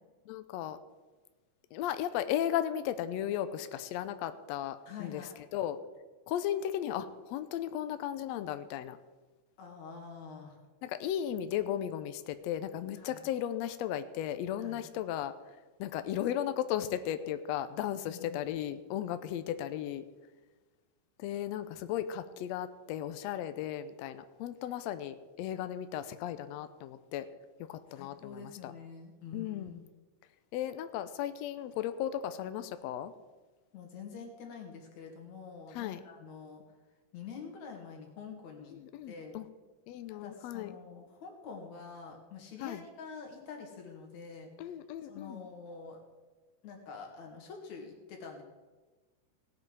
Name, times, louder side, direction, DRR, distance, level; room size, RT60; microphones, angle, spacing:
voice 1, 0.3-0.8 1.7-5.2 5.5-5.8 6.3-9.0 10.8-15.3 15.8-20.0 21.2-27.3 27.7-28.7 29.3-29.7 30.5-33.1 35.7-36.0 38.7-39.5 39.9-40.7 42.6-42.8 44.6-45.5, left 11 dB, 85° left, 11 dB, 1.5 m, -35 dB
voice 2, 4.9-5.4 9.6-10.6 13.0-13.2 14.6-14.8 18.0-18.4 27.9-29.8 33.7-36.6 37.1-38.7 39.1-39.4 40.1-44.7 45.1-46.0 46.6-48.4, left 5 dB, 65° left, 2 dB, 3.0 m, -46 dB
17.5 x 7.6 x 4.7 m, 1.3 s
omnidirectional pair, 3.7 m